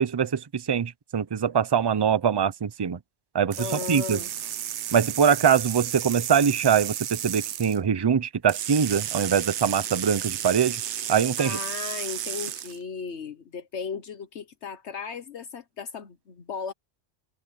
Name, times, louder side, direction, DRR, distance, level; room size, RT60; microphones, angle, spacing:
voice 1, 0.0-3.0 3.3-4.2 4.9-10.8 11.1-11.6, right 7 dB, 35° right, 0.4 m, -23 dB
sound 1, 3.5-7.8 8.5-12.8, right 11 dB, 75° right, 1.0 m, -33 dB
voice 2, 3.6-4.3 11.4-16.7, left 6 dB, 70° left, 1.3 m, -36 dB
omnidirectional pair, 1.2 m